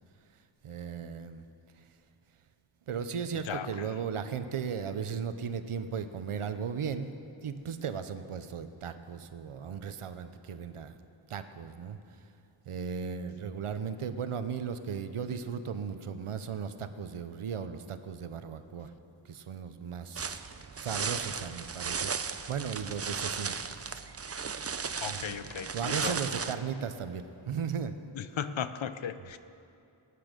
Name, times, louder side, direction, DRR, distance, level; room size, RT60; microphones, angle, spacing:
voice 1, 0.6-1.4 1.8-1.9 2.9-7.1 7.4-10.9 11.3-12.2 12.7-18.9 19.2-20.4 20.8-24.0 25.1-25.4 25.7-28.0, right 6 dB, 85° right, 10 dB, 0.8 m, -36 dB
sound 1, 20.2-26.5, right 5 dB, 30° right, 0.5 m, -35 dB
voice 2, 25.0-26.1 28.4-29.4, left 8 dB, 65° left, 12 dB, 0.7 m, -36 dB
19.5 x 9.6 x 5.1 m, 2.6 s
wide cardioid pair, 80°, 49 cm